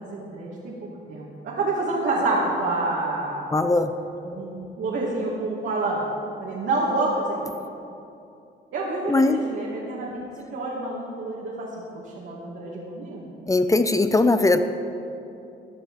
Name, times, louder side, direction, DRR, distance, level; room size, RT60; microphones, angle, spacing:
voice 1, 0.0-3.5 4.2-6.0 6.4-7.5 8.7-10.1 10.5-11.7 11.9-13.3, right 2 dB, 70° right, -5 dB, 2.4 m, -28 dB
voice 2, 3.5-3.9 9.1-9.4 13.5-14.6, left 2 dB, 15° left, 9 dB, 0.6 m, -19 dB
15.5 x 10.0 x 4.9 m, 2.7 s
cardioid pair, 90°, 20 cm